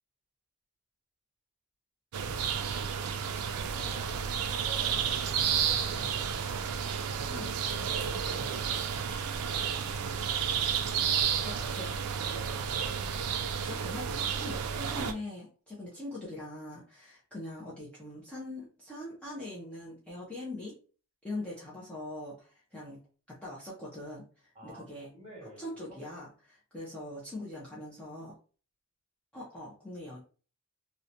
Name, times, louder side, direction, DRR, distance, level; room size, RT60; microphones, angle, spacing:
sound 1, 2.1-15.1, right 7 dB, 85° right, 0.4 m, -31 dB
voice 1, 3.7-6.8 7.7-8.9 24.5-26.0, right 1 dB, 25° right, -4 dB, 1.2 m, -49 dB
voice 2, 11.4-12.0 13.6-14.1 14.4-20.7 21.2-23.0 23.3-25.1 25.6-28.3 29.3-30.2, left 1 dB, 5° left, -8 dB, 0.5 m, -42 dB
2.8 x 2.1 x 2.5 m, 0.39 s
head